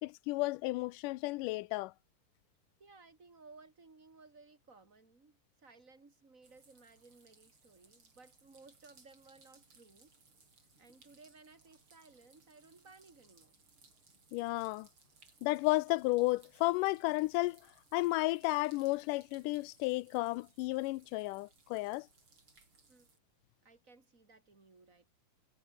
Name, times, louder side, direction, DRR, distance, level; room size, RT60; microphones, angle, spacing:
voice 1, 0.0-1.9 14.3-14.9 15.4-17.6 17.9-22.1, left 21 dB, 85° left, 2.2 m, -33 dB
voice 2, 2.8-10.1 10.8-13.6 22.9-23.1 23.6-25.1, right 3 dB, 25° right, 4.6 m, -59 dB
sound 1, 6.4-23.2, right 4 dB, 40° right, 5.6 m, -65 dB
omnidirectional pair, 3.7 m